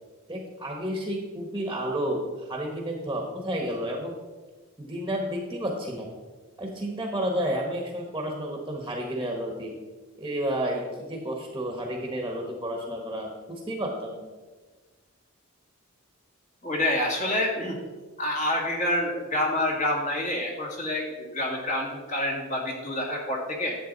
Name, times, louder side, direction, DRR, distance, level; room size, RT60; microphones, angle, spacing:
voice 1, 0.3-4.1 4.8-6.1 6.6-9.8 10.2-14.2, equal, 15° right, 1 dB, 1.4 m, -31 dB
voice 2, 16.6-17.8 18.2-23.8, left 1 dB, 35° left, -1 dB, 2.1 m, -27 dB
11.0 x 8.0 x 4.0 m, 1.3 s
head